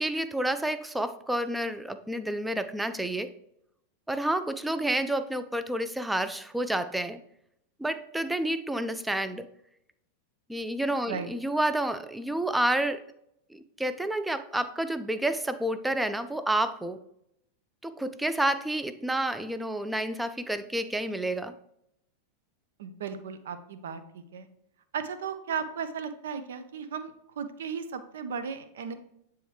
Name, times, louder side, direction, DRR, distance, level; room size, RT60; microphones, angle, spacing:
voice 1, 0.0-3.3 4.1-7.2 7.8-9.5 10.5-13.0 13.5-17.0 17.8-21.5, right 1 dB, 5° right, 11 dB, 0.4 m, -29 dB
voice 2, 22.8-24.5 24.9-28.9, right 6 dB, 60° right, 10 dB, 0.6 m, -36 dB
8.9 x 3.5 x 3.2 m, 0.77 s
figure-of-eight pair, 90°, 0 cm